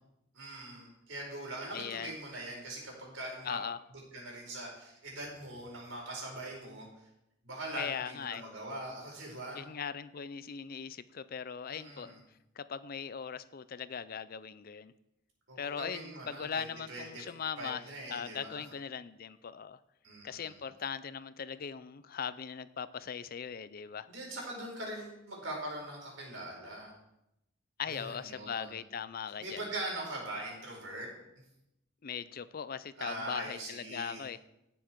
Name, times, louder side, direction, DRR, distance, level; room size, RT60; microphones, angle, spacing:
voice 1, 0.3-3.6 4.1-6.9 7.4-9.6 11.7-12.2 15.5-17.2 17.6-18.6 20.0-20.6 24.1-26.9 27.9-28.7 29.4-31.1 33.0-34.2, right 1 dB, 80° right, -1 dB, 4.8 m, -42 dB
voice 2, 1.7-2.2 3.4-3.8 7.8-8.4 9.5-12.2 12.6-14.9 15.6-17.8 18.1-19.8 20.2-24.1 27.8-29.7 32.0-34.4, left 7 dB, 50° left, 15 dB, 0.5 m, -39 dB
17.5 x 7.2 x 4.6 m, 0.85 s
head